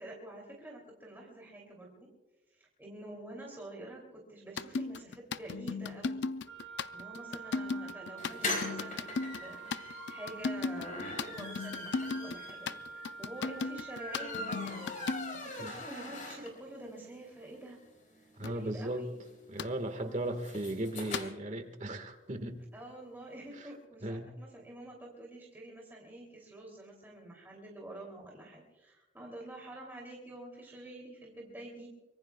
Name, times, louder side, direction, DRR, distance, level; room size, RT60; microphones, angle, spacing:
voice 1, 0.0-2.1 2.5-6.3 6.7-14.9 15.3-17.8 18.2-19.2 20.0-20.2 22.7-31.9, right 1 dB, 10° right, -2 dB, 2.8 m, -48 dB
sound 1, 4.6-15.5 18.4-18.5 19.6-19.7 21.1-21.3, left 4 dB, 65° left, 0.5 m, -36 dB
Wind instrument woodwind instrument, 6.5-15.3, right 4 dB, 70° right, 3.3 m, -48 dB
sound 2, 8.2-16.8 17.2-17.3 17.5-17.6 17.8-21.2, left 2 dB, 45° left, 4.5 m, -41 dB
voice 2, 18.4-19.0 19.5-22.6 24.0-24.3, right 1 dB, 40° right, 7 dB, 1.6 m, -36 dB
24.5 x 22.5 x 2.3 m, 1.1 s
head